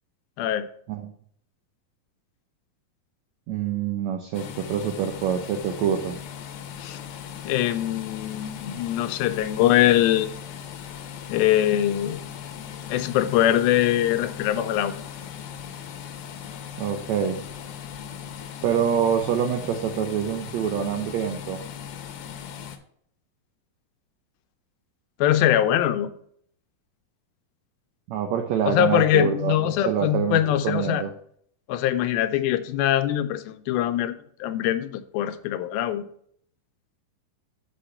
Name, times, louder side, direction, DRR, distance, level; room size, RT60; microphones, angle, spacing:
voice 1, 0.4-0.7 6.8-7.0 7.4-10.3 11.3-12.2 12.9-14.9 25.2-26.1 28.7-31.0 31.7-34.2 34.4-36.0, left 12 dB, 90° left, 10 dB, 2.5 m, -22 dB
voice 2, 3.5-6.2 16.8-17.4 18.6-21.6 28.1-30.4 30.6-31.1, right 8 dB, 85° right, 5 dB, 1.5 m, -26 dB
sound 1, 4.3-22.8, left 8 dB, 75° left, 2.0 m, -38 dB
6.3 x 5.7 x 5.6 m, 0.63 s
omnidirectional pair, 4.1 m